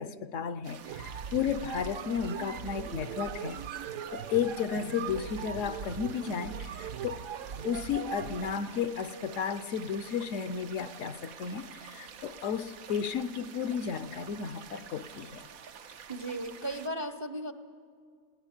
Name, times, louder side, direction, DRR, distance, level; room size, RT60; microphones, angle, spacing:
voice 1, 0.0-3.6 4.1-7.2 7.6-15.5, left 7 dB, 70° left, 13 dB, 1.0 m, -33 dB
sound 1, 0.6-16.9, right 7 dB, 90° right, 1.3 m, -49 dB
sound 2, 0.8-8.6, right 7 dB, 70° right, 1.1 m, -40 dB
voice 2, 16.1-17.5, right 1 dB, 30° right, 8 dB, 0.5 m, -36 dB
21.0 x 17.5 x 7.2 m, 2.2 s
omnidirectional pair, 1.4 m